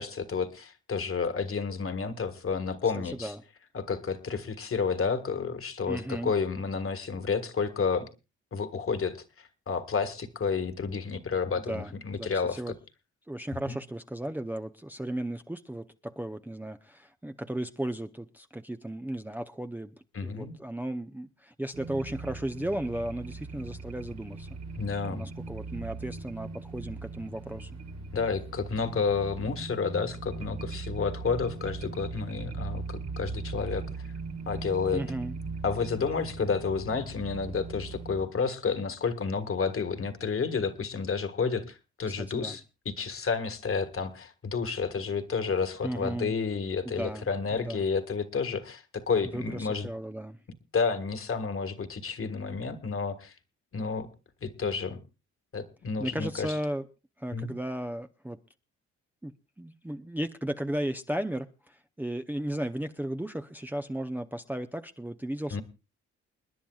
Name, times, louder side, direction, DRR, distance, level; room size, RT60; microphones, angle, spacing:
voice 1, 0.0-3.3 3.7-8.1 8.5-12.6 13.7-13.8 20.1-20.6 24.8-25.3 28.1-34.1 34.5-35.0 35.6-49.9 50.7-53.3 53.7-54.1 54.4-55.0 55.5-56.5 57.3-57.5 65.5-65.6, left 5 dB, 45° left, 9 dB, 1.6 m, -30 dB
voice 2, 3.0-3.4 5.9-6.3 11.5-12.7 13.3-19.9 20.2-24.5 25.1-27.7 34.9-35.4 42.2-42.6 45.8-46.3 46.8-47.8 49.3-50.4 56.0-56.8 57.2-58.4 59.2-65.6, right 1 dB, 5° right, 7 dB, 0.6 m, -35 dB
sound 1, 21.7-38.3, right 3 dB, 65° right, 1.9 m, -39 dB
29.0 x 10.0 x 2.3 m, 0.29 s
cardioid pair, 70°, 30 cm